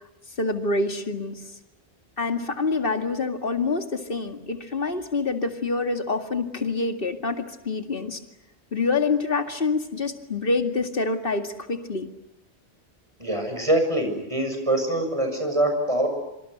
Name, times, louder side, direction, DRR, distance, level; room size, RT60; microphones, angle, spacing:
voice 1, 0.4-1.4 2.2-8.2 8.7-12.1, left 3 dB, 55° left, 5 dB, 2.4 m, -26 dB
voice 2, 13.2-16.1, right 1 dB, 30° right, 5 dB, 6.6 m, -24 dB
26.5 x 26.0 x 8.0 m, 0.93 s
omnidirectional pair, 1.1 m